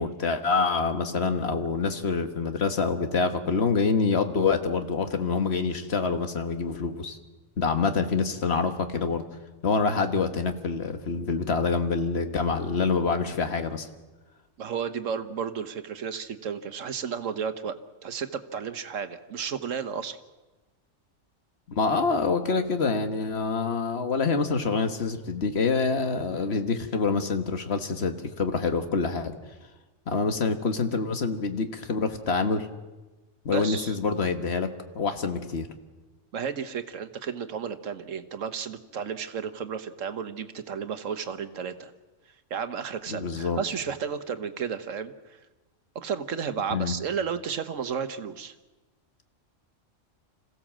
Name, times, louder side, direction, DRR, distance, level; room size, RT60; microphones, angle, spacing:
voice 1, 0.0-7.2 7.6-9.2 9.6-13.9 21.7-29.3 30.1-32.7 33.5-34.7 34.9-35.7 43.1-43.6 46.7-47.0, left 4 dB, 55° left, 7 dB, 1.7 m, -26 dB
voice 2, 14.6-17.7 18.0-20.2 33.5-34.0 36.3-41.9 42.5-45.4 45.9-48.5, right 7 dB, 85° right, 10 dB, 1.5 m, -33 dB
26.5 x 16.0 x 7.5 m, 1.2 s
omnidirectional pair, 1.3 m